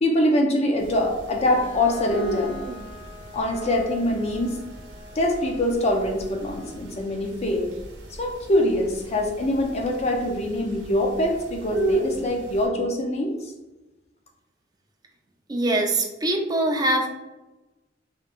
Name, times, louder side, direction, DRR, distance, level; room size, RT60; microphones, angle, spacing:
voice 1, 0.0-2.5 3.3-4.6 5.2-7.7 8.2-13.3, left 1 dB, 35° left, 2 dB, 0.5 m, -24 dB
sound 1, 0.8-12.7, right 3 dB, 80° right, 0.9 m, -37 dB
Bowed string instrument, 1.4-7.0, left 3 dB, 70° left, 1.2 m, -44 dB
voice 2, 15.5-17.1, right 1 dB, 20° right, 2 dB, 0.6 m, -23 dB
5.5 x 3.1 x 2.4 m, 1.1 s
head